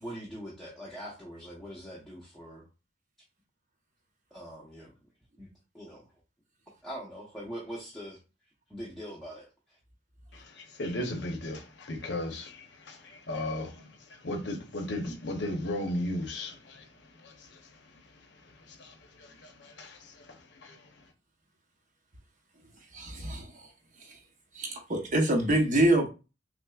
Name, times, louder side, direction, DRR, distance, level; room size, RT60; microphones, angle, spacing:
voice 1, 0.0-2.7 4.3-4.9 5.4-5.5 5.7-6.0 6.8-8.2 8.7-9.8, equal, ahead, 0.7 m, -42 dB
voice 2, 10.3-21.0, left 1 dB, 65° left, 0.8 m, -37 dB
voice 3, 22.9-23.5 24.5-26.1, right 1 dB, 45° right, 0.9 m, -25 dB
5.9 x 2.0 x 2.3 m
head